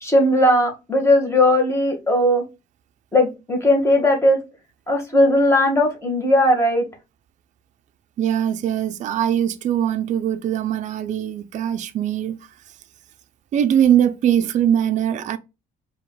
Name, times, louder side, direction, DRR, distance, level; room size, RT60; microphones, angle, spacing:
voice 1, 0.0-2.4 3.1-4.4 4.9-6.8, left 1 dB, 15° left, 1.6 m, -17 dB
voice 2, 8.2-12.4 13.5-15.4, right 10 dB, 45° right, 0.4 m, -21 dB
4.8 x 2.8 x 2.2 m
cardioid pair, 110°, 17 cm